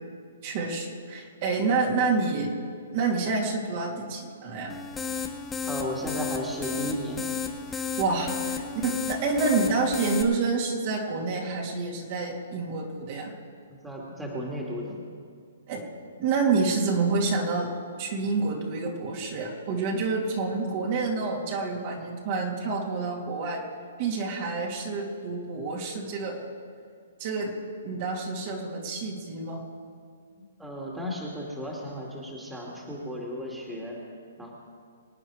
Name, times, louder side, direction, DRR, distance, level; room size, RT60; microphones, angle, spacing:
voice 1, 0.4-2.5 2.9-4.8 7.7-13.4 15.7-15.9 16.2-17.7 18.0-23.6 24.0-26.4 27.2-27.5 27.8-29.6, right 4 dB, 45° right, -1 dB, 3.0 m, -28 dB
sound 1, 4.7-10.2, left 6 dB, 10° left, 1.1 m, -33 dB
voice 2, 5.6-7.3 13.8-15.0 30.6-34.0 34.4-34.5, equal, 5° right, -3 dB, 2.6 m, -34 dB
25.5 x 9.1 x 5.0 m, 2.2 s
hypercardioid pair, 140°, 0 cm